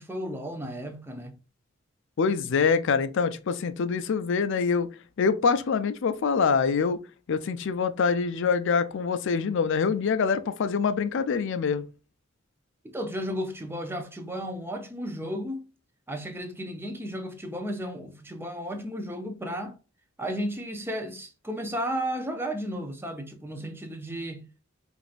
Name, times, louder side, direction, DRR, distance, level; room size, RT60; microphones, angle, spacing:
voice 1, 0.0-1.4 12.8-15.7 16.1-19.7 20.2-24.4, equal, 10° right, 0.6 m, -34 dB
voice 2, 2.2-4.9 5.2-7.0 7.3-11.9, left 5 dB, 65° left, 0.4 m, -25 dB
4.9 x 2.5 x 2.5 m
head